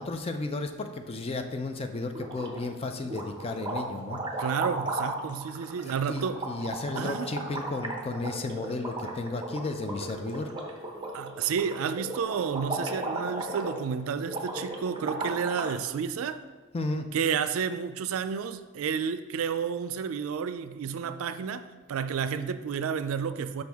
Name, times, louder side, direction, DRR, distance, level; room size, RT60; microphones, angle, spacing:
voice 1, 0.0-4.2 5.8-10.5 16.7-17.1, left 2 dB, 30° left, 6 dB, 0.4 m, -33 dB
sound 1, 2.1-2.7 3.1-15.8, right 2 dB, 20° right, 0.7 m, -36 dB
voice 2, 4.4-6.4 7.0-7.4 11.1-16.4 17.1-23.6, right 6 dB, 75° right, 11 dB, 0.4 m, -31 dB
6.0 x 5.2 x 3.5 m, 1.3 s
head